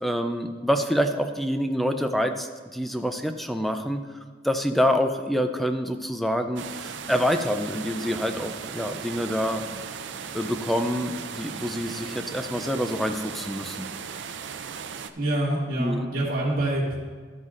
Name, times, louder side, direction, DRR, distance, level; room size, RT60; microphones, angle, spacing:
voice 1, 0.0-4.0 4.4-9.6 10.3-13.9 15.8-16.1, equal, ahead, 6 dB, 0.4 m, -26 dB
sound 1, 6.6-15.1, right 6 dB, 65° right, 0.5 m, -37 dB
voice 2, 15.2-16.9, right 1 dB, 50° right, -9 dB, 1.8 m, -26 dB
13.0 x 8.1 x 2.5 m, 1.5 s
head